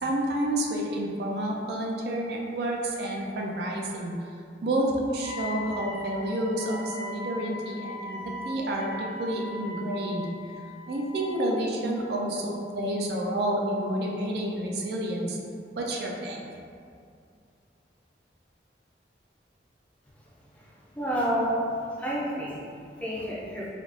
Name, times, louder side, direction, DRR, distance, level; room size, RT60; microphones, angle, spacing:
voice 1, 0.0-4.1 4.6-8.2 8.4-10.3 10.9-15.4 15.8-16.4, right 1 dB, 65° right, -1 dB, 0.4 m, -29 dB
Wind instrument woodwind instrument, 5.2-11.6, left 1 dB, 60° left, 0.7 m, -40 dB
voice 2, 20.5-21.6 22.0-23.7, equal, 10° left, -7 dB, 0.4 m, -30 dB
3.4 x 2.4 x 2.4 m, 2.4 s
head